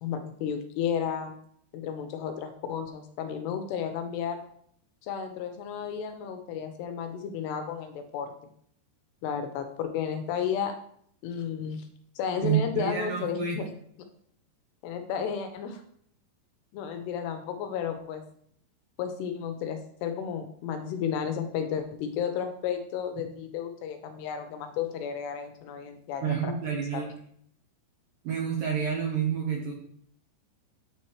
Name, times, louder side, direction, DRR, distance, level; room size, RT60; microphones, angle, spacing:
voice 1, 0.0-1.3 1.7-4.4 5.0-8.3 9.2-10.7 11.2-11.8 12.2-13.7 14.8-15.8 16.7-18.2 19.0-27.0, left 7 dB, 80° left, 6 dB, 2.6 m, -33 dB
voice 2, 12.4-13.7 26.2-27.2 28.2-29.7, right 7 dB, 70° right, -2 dB, 2.1 m, -29 dB
9.3 x 4.3 x 3.1 m, 0.64 s
omnidirectional pair, 5.0 m